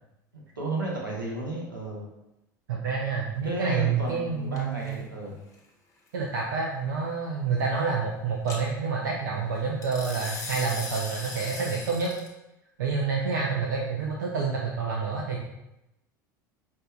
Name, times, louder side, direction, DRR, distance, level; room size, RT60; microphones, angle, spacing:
voice 1, 0.3-2.0 3.4-5.4, right 2 dB, 85° right, -4 dB, 0.9 m, -33 dB
voice 2, 2.7-5.0 6.1-12.1 12.8-15.4, right 5 dB, 65° right, -2 dB, 0.5 m, -28 dB
sound 1, 4.6-4.9 8.5-8.6 9.8-12.3, left 2 dB, 30° left, 1.0 m, -38 dB
5.2 x 2.6 x 2.3 m, 0.91 s
figure-of-eight pair, 75°, 11 cm